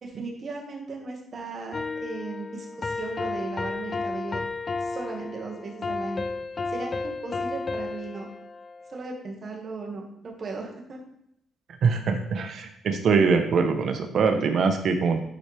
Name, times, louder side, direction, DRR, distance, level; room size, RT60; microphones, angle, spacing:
voice 1, 0.0-4.4 4.8-6.2 6.7-8.3 8.9-11.0, right 3 dB, 45° right, 0 dB, 2.0 m, -37 dB
sound 1, 1.7-9.0, left 3 dB, 35° left, 0.6 m, -32 dB
voice 2, 11.8-15.2, right 5 dB, 60° right, 6 dB, 1.0 m, -23 dB
11.0 x 4.5 x 3.5 m, 0.78 s
cardioid pair, 90°, 0 cm